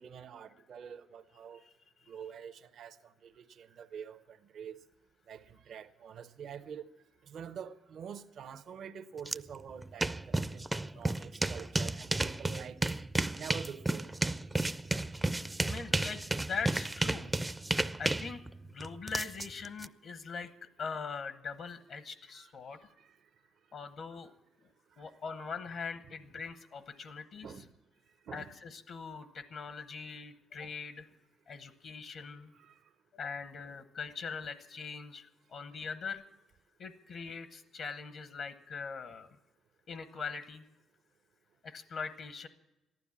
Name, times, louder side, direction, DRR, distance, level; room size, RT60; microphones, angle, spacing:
voice 1, 0.0-1.6 2.1-3.0 3.2-4.8 5.3-6.9 7.3-12.8 13.4-14.1 22.3-22.5 27.4-27.6 28.3-28.5 32.5-32.7, right 7 dB, 65° right, 0.7 m, -46 dB
sound 1, 9.3-9.4 9.7-19.9, right 2 dB, 15° right, 0.4 m, -32 dB
voice 2, 15.7-17.3 18.0-20.5 20.8-22.8 23.7-24.3 24.6-27.5 28.3-31.1 31.5-32.5 33.1-36.2 36.8-39.3 39.9-40.6 41.6-42.5, left 5 dB, 65° left, 0.9 m, -42 dB
14.5 x 12.0 x 7.2 m
cardioid pair, 90°, 0 cm